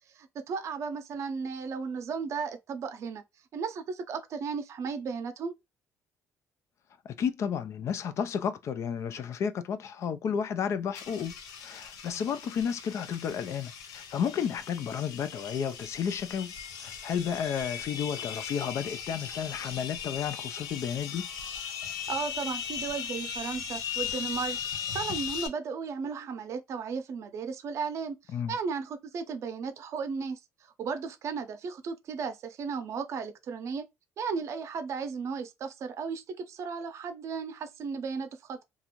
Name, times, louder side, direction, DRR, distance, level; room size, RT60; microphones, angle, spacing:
voice 1, 0.2-3.2 3.5-5.5 22.1-24.6 24.9-28.2 28.5-30.4 30.8-33.8 34.2-38.6, right 5 dB, 55° right, 0.6 m, -35 dB
voice 2, 7.0-11.4 11.6-16.5 16.8-21.3 28.3-28.5, left 7 dB, 50° left, 0.4 m, -32 dB
sound 1, 10.9-25.5, left 8 dB, 85° left, 0.7 m, -38 dB
2.5 x 2.3 x 2.9 m
cardioid pair, 110°, 6 cm